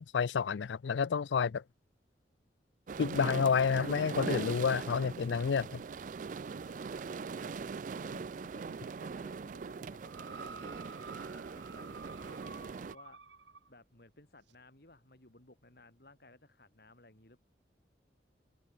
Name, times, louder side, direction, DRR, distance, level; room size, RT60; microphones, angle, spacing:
voice 1, 0.0-1.5 3.0-5.8, left 6 dB, 85° left, 0.4 m, -29 dB
sound 1, 2.9-12.9, right 5 dB, 45° right, 0.4 m, -41 dB
voice 2, 6.5-17.4, left 2 dB, 55° left, 3.1 m, -59 dB
sound 2, 10.0-13.7 14.5-14.6, right 4 dB, 90° right, 4.6 m, -50 dB
head